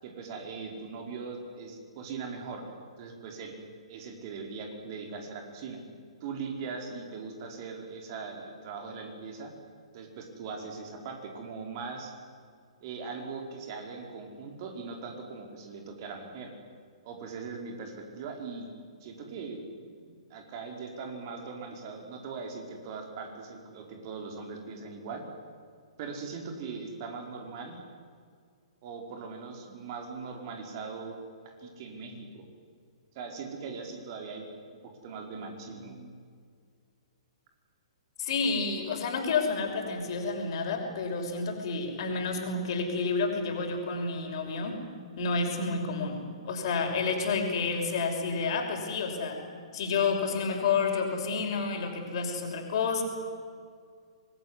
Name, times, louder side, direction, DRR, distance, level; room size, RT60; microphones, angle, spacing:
voice 1, 0.0-2.6 3.0-3.6 3.9-5.8 6.2-9.5 9.9-12.1 12.8-16.5 17.0-18.7 19.0-25.2 26.0-27.7 28.8-31.2 31.4-32.4 33.1-34.5 35.0-36.1, right 4 dB, 40° right, 3 dB, 4.9 m, -40 dB
voice 2, 38.2-44.8 45.2-49.4 49.7-53.0, left 4 dB, 50° left, 3 dB, 5.8 m, -30 dB
25.0 x 21.0 x 9.8 m, 2.1 s
figure-of-eight pair, 115°, 3 cm